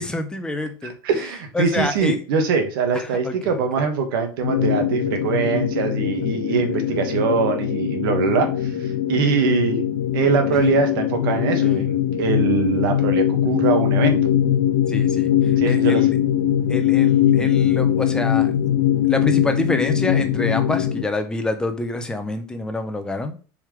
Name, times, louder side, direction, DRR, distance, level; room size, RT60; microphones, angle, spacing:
voice 1, 0.0-0.9 1.5-2.2 2.9-3.8 6.6-6.8 7.1-7.3 14.9-15.3 15.6-16.1 16.7-18.5 19.1-23.4, left 2 dB, 5° left, 7 dB, 0.8 m, -27 dB
voice 2, 0.8-9.9 10.1-14.3 15.6-16.1, right 5 dB, 80° right, 5 dB, 1.8 m, -22 dB
sound 1, 4.4-21.0, left 10 dB, 80° left, 1.4 m, -21 dB
7.3 x 4.9 x 3.3 m, 0.37 s
supercardioid pair, 165°, 11 cm